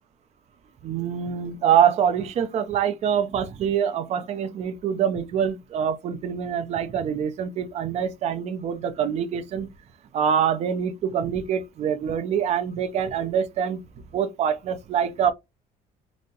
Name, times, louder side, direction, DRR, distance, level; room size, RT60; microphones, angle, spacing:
voice 1, 0.8-9.7 10.1-13.8 14.1-15.3, right 8 dB, 40° right, 0.4 m, -25 dB
3.4 x 2.0 x 2.6 m
cardioid pair, 145°, 17 cm